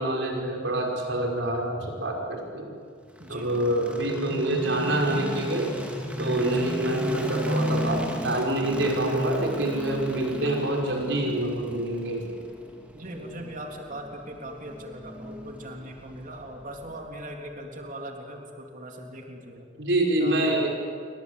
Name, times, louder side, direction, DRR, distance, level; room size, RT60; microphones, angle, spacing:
voice 1, 0.0-2.7 3.3-5.7 6.2-12.2 19.8-20.7, right 1 dB, 60° right, 1 dB, 5.7 m, -26 dB
sound 1, 3.1-17.2, equal, 5° right, 2.9 m, -34 dB
voice 2, 3.2-3.8 6.4-6.7 12.9-19.7 20.2-20.4, right 1 dB, 40° right, 2 dB, 3.5 m, -40 dB
28.5 x 24.5 x 8.4 m, 2.1 s
head